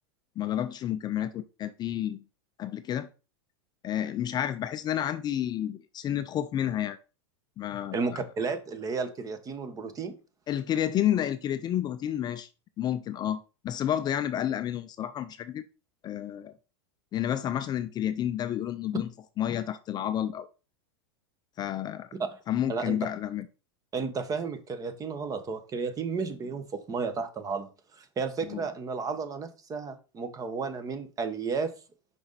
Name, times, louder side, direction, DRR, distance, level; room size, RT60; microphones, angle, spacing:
voice 1, 0.4-2.2 2.6-3.1 3.8-7.0 7.6-8.2 10.5-12.5 12.8-15.6 16.0-16.5 17.1-19.1 19.4-20.5 21.6-22.1 22.5-23.5 28.5-28.6, left 11 dB, 30° left, 0.5 m, -30 dB
voice 2, 7.9-10.1 22.7-23.0 23.9-27.7 28.0-31.7, right 5 dB, 25° right, 1.0 m, -33 dB
5.8 x 5.3 x 4.0 m
hypercardioid pair, 115°, 14 cm